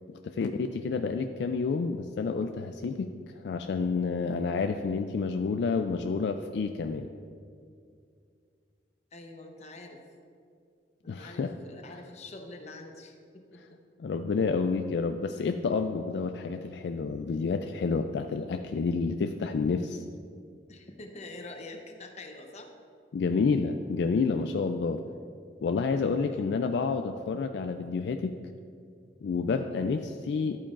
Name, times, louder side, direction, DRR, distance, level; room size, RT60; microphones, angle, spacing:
voice 1, 0.1-7.1 11.1-11.5 14.0-20.0 23.1-25.0 25.6-28.4 29.2-30.6, left 4 dB, 70° left, 7 dB, 0.3 m, -29 dB
voice 2, 9.1-10.0 11.0-13.8 20.7-22.7 26.3-26.5, left 2 dB, 40° left, 4 dB, 0.8 m, -45 dB
11.5 x 8.6 x 2.5 m, 2.3 s
head